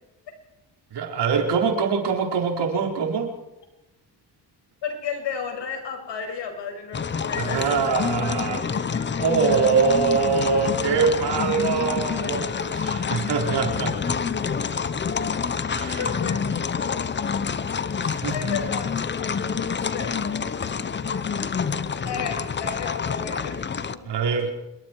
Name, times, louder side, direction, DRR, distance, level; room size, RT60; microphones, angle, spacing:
voice 1, 0.9-3.3 7.4-8.6 9.2-14.1 15.7-16.1 18.0-18.5 20.7-20.8 24.0-24.5, right 5 dB, 70° right, 2 dB, 4.7 m, -24 dB
voice 2, 4.8-9.2 16.0-17.0 18.3-19.4 19.9-20.2 20.7-20.9 22.0-24.1, left 6 dB, 80° left, 4 dB, 6.3 m, -34 dB
sound 1, 6.9-23.9, left 6 dB, 25° left, 0.8 m, -27 dB
26.5 x 22.5 x 4.7 m, 0.96 s
cardioid pair, 140°, 42 cm